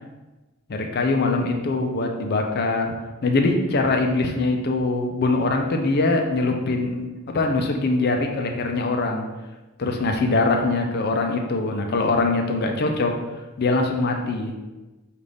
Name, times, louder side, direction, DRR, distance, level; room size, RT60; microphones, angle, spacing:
voice 1, 0.7-2.9 3.2-7.1 7.3-9.3 9.8-13.2 13.6-14.5, left 3 dB, 45° left, 3 dB, 0.4 m, -22 dB
5.2 x 2.5 x 3.4 m, 1.1 s
head